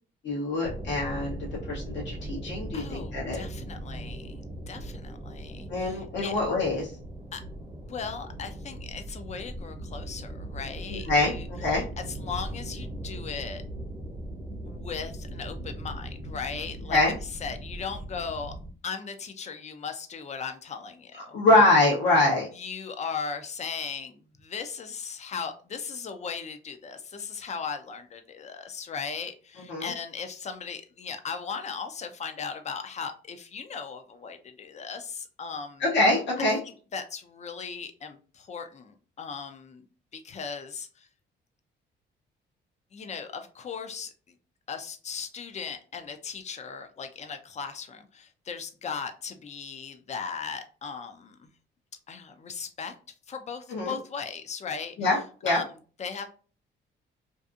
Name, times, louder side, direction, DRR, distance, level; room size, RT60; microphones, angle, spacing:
voice 1, 0.2-1.4 1.7-3.4 5.7-6.9 10.9-11.3 11.6-11.8 16.9-17.1 21.3-22.5 29.7-29.9 35.8-36.6 53.7-53.9 55.0-55.2 55.4-55.6, left 2 dB, 65° left, -4 dB, 0.9 m, -24 dB
sound 1, 0.6-18.7, right 1 dB, 20° right, 0.7 m, -39 dB
voice 2, 2.7-6.4 7.3-7.4 7.8-11.5 11.7-13.6 14.6-17.0 17.3-18.5 18.8-21.4 22.5-35.8 36.9-39.9 40.1-41.1 42.9-44.3 44.7-51.5 52.1-52.9 53.3-55.2 55.5-55.6 56.0-56.3, left 6 dB, 35° left, 7 dB, 0.5 m, -37 dB
2.6 x 2.5 x 2.4 m, 0.38 s
cardioid pair, 90°, 20 cm